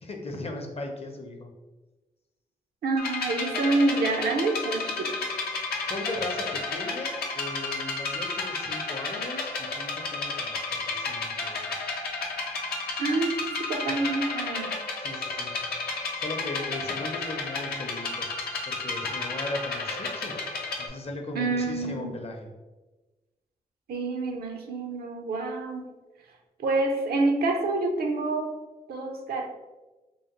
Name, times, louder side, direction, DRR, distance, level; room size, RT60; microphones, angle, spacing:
voice 1, 0.0-1.5 5.9-11.7 15.0-15.5 16.2-18.3 18.7-20.3 20.8-22.5, left 2 dB, 40° left, 3 dB, 0.6 m, -37 dB
voice 2, 2.8-5.2 13.0-14.7 21.3-22.1 23.9-25.9 26.6-28.5 28.9-29.5, right 3 dB, 75° right, 3 dB, 0.5 m, -27 dB
sound 1, 3.0-20.9, left 3 dB, 80° left, 0.6 m, -32 dB
3.0 x 2.0 x 2.9 m, 1.1 s
supercardioid pair, 50°, 16 cm